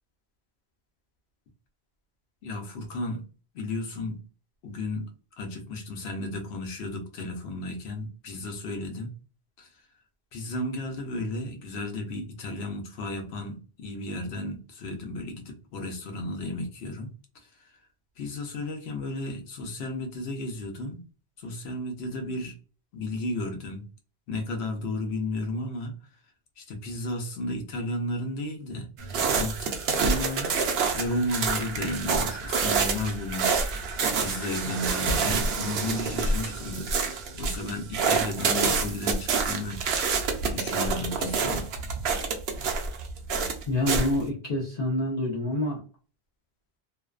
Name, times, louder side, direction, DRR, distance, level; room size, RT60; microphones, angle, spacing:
voice 1, 2.4-3.2 3.5-4.2 4.6-5.0 5.4-9.1 9.6-9.7 10.3-17.1 18.2-21.0 21.4-22.6 22.9-23.8 24.3-26.0 26.6-30.5 30.9-33.7 34.2-39.8 40.5-41.7, left 1 dB, 85° left, 0.9 m, -33 dB
sound 1, 29.0-44.2, right 5 dB, 75° right, 0.8 m, -27 dB
voice 2, 43.7-45.8, left 1 dB, 45° left, 0.6 m, -27 dB
2.5 x 2.1 x 2.3 m
omnidirectional pair, 1.1 m